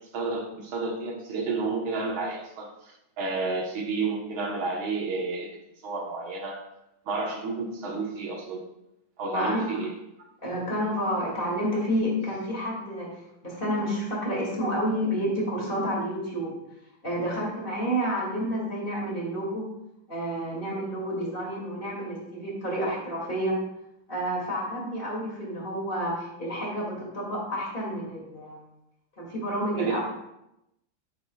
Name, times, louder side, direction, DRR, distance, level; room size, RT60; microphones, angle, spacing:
voice 1, 0.1-5.5 5.8-6.6 7.1-8.6 9.2-10.0 29.8-30.0, right 3 dB, 75° right, 1 dB, 2.0 m, -31 dB
voice 2, 9.3-9.7 10.4-13.1 13.4-16.6 17.0-19.7 20.1-23.6 24.1-28.6 29.2-30.0, equal, 25° left, -4 dB, 2.4 m, -29 dB
10.0 x 8.2 x 2.3 m, 0.85 s
omnidirectional pair, 2.3 m